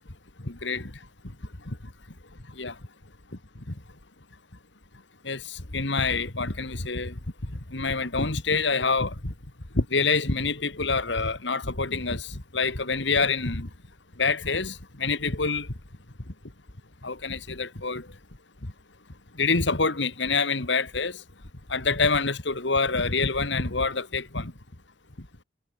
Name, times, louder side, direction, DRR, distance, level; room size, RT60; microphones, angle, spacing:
voice 1, 0.4-0.9 2.6-2.7 3.7-3.8 5.2-7.1 7.7-9.3 9.7-13.7 14.2-15.7 17.0-18.1 19.4-21.2 21.7-24.5, left 4 dB, 75° left, 2.4 m, -26 dB
head